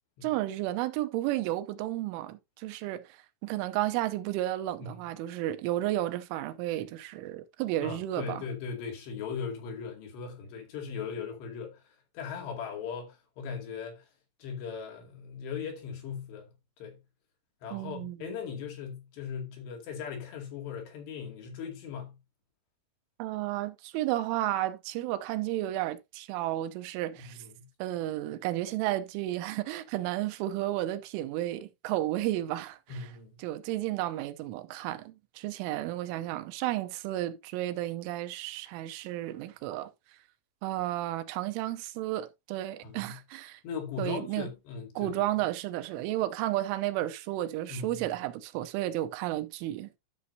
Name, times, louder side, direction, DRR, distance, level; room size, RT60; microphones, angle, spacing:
voice 1, 0.2-8.4 17.7-18.4 23.2-27.4 27.8-33.1 33.4-39.9 40.6-43.6 44.0-44.5 45.0-49.9, right 14 dB, 85° right, 3.2 m, -32 dB
voice 2, 7.8-11.8 12.1-14.1 14.4-16.5 16.8-17.0 17.6-22.2 27.2-27.7 32.9-33.4 42.8-43.2 43.6-45.2 47.7-48.1, left 6 dB, 65° left, 4.2 m, -39 dB
12.5 x 6.3 x 2.7 m
omnidirectional pair, 5.6 m